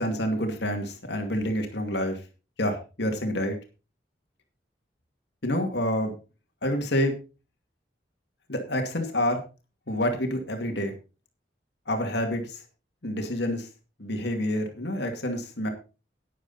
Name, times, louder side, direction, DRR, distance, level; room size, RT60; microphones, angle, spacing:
voice 1, 0.0-2.2 2.6-3.5 5.4-6.1 6.6-7.1 8.5-9.4 9.9-10.9 11.9-12.6 13.0-13.7 14.0-15.7, left 1 dB, 70° left, 4 dB, 2.3 m, -28 dB
11.5 x 9.8 x 4.1 m, 0.32 s
head